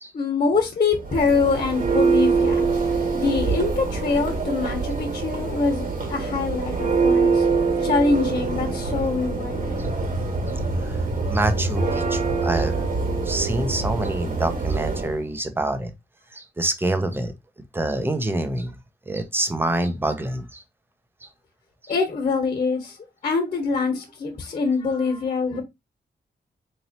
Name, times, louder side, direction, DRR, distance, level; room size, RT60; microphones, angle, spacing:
voice 1, 0.1-2.7 3.1-7.5 7.8-9.8 21.9-23.0 23.2-25.6, left 4 dB, 40° left, 1.1 m, -24 dB
Church bell, 0.9-15.2, right 4 dB, 55° right, 1.7 m, -24 dB
voice 2, 10.8-12.9 13.2-15.9 16.3-17.3 17.7-18.8 19.1-20.6 21.2-21.3, right 1 dB, 15° right, 0.5 m, -26 dB
4.0 x 3.0 x 2.8 m
wide cardioid pair, 160°, 17 cm